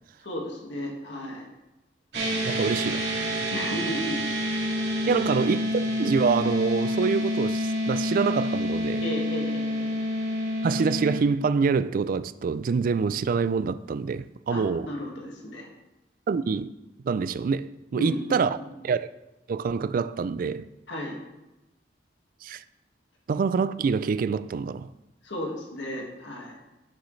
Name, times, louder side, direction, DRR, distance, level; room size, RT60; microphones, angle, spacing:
voice 1, 0.2-1.5 3.5-4.2 9.0-10.0 14.5-15.7 17.9-18.7 20.9-21.2 25.2-26.6, left 1 dB, 75° left, 1.9 m, -34 dB
sound 1, 2.1-11.2, left 1 dB, 70° right, 2.0 m, -28 dB
voice 2, 2.4-3.1 5.1-9.0 10.6-14.9 16.3-16.7 17.0-18.5 18.8-19.1 19.5-20.7 22.4-22.6 23.3-24.9, right 5 dB, 50° right, 0.3 m, -26 dB
11.0 x 6.3 x 3.2 m
head